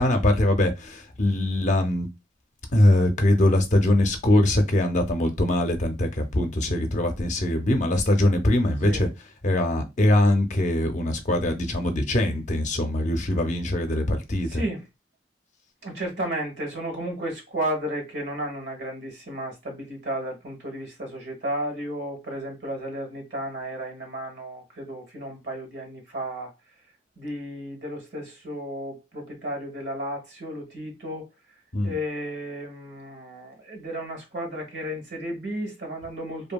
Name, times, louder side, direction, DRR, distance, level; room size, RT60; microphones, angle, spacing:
voice 1, 0.0-2.1 2.7-9.1 9.4-14.6 31.7-31.9, left 1 dB, 45° left, 0.5 m, -22 dB
voice 2, 14.5-14.9 15.8-26.5 27.2-31.3 31.8-36.5, right 1 dB, 80° right, 1.1 m, -33 dB
2.7 x 2.6 x 2.2 m
head